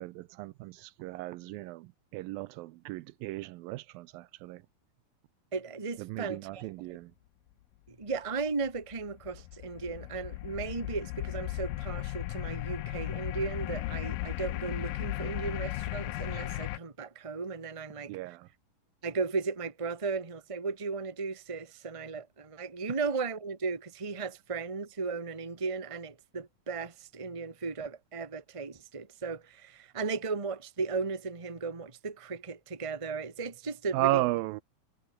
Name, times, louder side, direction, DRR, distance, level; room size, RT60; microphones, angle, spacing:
voice 1, 0.0-4.6 6.0-7.1 18.1-18.5 33.9-34.6, right 18 dB, 80° right, 2.3 m, -34 dB
voice 2, 5.5-7.0 7.9-18.1 19.0-34.2, right 4 dB, 15° right, 1.1 m, -36 dB
sound 1, 8.4-16.8, left 18 dB, 80° left, 2.3 m, -36 dB
omnidirectional pair, 4.2 m